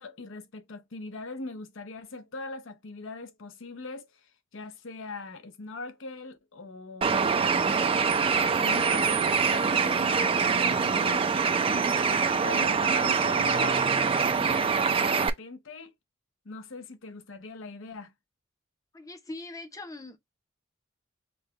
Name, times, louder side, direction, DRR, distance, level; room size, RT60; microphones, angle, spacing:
voice 1, 0.0-7.5 8.2-11.3 11.7-15.9 16.4-18.1, left 3 dB, 70° left, 0.7 m, -41 dB
Bird, 7.0-15.3, right 5 dB, 25° right, 0.3 m, -24 dB
voice 2, 18.9-20.2, left 2 dB, 15° left, 0.6 m, -41 dB
5.3 x 2.2 x 2.8 m
head